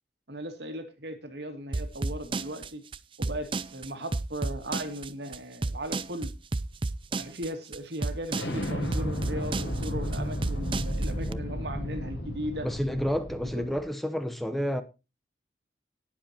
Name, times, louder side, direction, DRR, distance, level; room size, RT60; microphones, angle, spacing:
voice 1, 0.3-2.8 3.2-6.3 7.2-12.7 13.5-13.6, right 1 dB, 65° right, 2.3 m, -37 dB
sound 1, 1.7-11.3, right 3 dB, 30° right, 0.5 m, -32 dB
Explosion, 8.3-13.8, equal, 80° left, 6.6 m, -33 dB
voice 2, 12.6-14.8, equal, ahead, 0.9 m, -30 dB
19.0 x 7.8 x 2.9 m
head